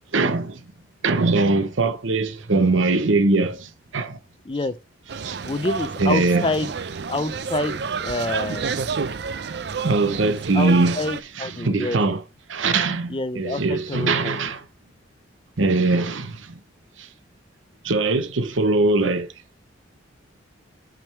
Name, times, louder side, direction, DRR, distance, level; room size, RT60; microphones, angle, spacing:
voice 1, 0.1-0.6 1.0-4.2 5.2-5.4 6.0-6.5 9.8-11.0 11.4-12.2 12.5-14.6 15.6-16.6 17.0-17.1 17.8-19.3, right 3 dB, 85° right, 0.8 m, -21 dB
sound 1, 5.1-11.2, right 5 dB, 60° right, 0.5 m, -30 dB
voice 2, 5.4-6.7 7.1-8.8 10.5-12.0 13.1-14.4, left 2 dB, 25° left, 0.5 m, -27 dB
6.1 x 5.1 x 4.5 m
head